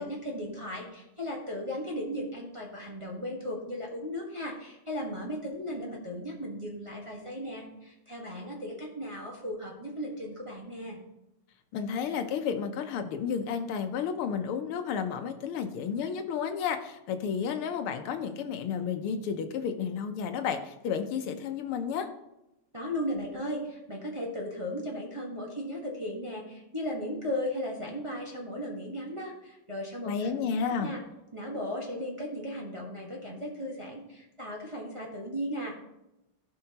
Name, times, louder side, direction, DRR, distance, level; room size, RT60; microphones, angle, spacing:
voice 1, 0.0-11.0 22.7-30.3 30.7-31.0 31.3-35.8, equal, 15° right, -3 dB, 1.2 m, -36 dB
voice 2, 11.7-22.1 30.1-30.9, left 7 dB, 80° left, 7 dB, 1.7 m, -32 dB
16.0 x 5.6 x 2.9 m, 0.91 s
omnidirectional pair, 2.4 m